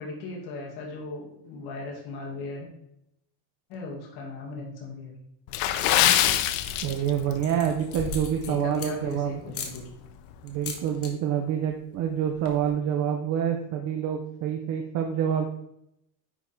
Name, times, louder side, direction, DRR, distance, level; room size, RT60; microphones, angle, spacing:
voice 1, 0.0-2.7 3.7-5.1 8.4-9.8, left 3 dB, 50° left, -3 dB, 2.3 m, -37 dB
Water / Splash splatter, 5.5-7.4 7.7-7.9 8.5-8.7 9.2-9.3, left 12 dB, 75° left, 0.7 m, -23 dB
sound 1, 6.6-6.9 7.3-9.1 9.5-9.8 10.5-11.1 11.4-11.7 12.0-12.1 12.3-12.7, left 4 dB, 30° left, 0.9 m, -38 dB
voice 2, 6.8-9.3 10.4-15.5, right 9 dB, 40° right, 3 dB, 0.6 m, -27 dB
9.8 x 3.7 x 4.4 m, 0.80 s
cardioid pair, 175°, 48 cm